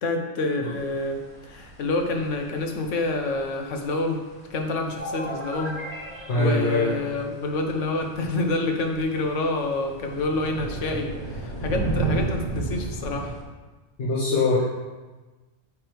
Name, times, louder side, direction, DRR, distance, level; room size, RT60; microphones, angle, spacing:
voice 1, 0.0-4.2 4.5-5.8 6.4-13.3, left 2 dB, 85° left, 4 dB, 1.2 m, -27 dB
sound 1, 0.7-13.4, right 3 dB, 45° left, 2.0 m, -35 dB
sound 2, 5.0-7.8, equal, 10° right, 1.0 m, -37 dB
voice 2, 6.3-7.0 14.0-14.6, left 2 dB, 65° left, -7 dB, 1.4 m, -22 dB
8.4 x 3.3 x 4.7 m, 1.2 s
omnidirectional pair, 1.2 m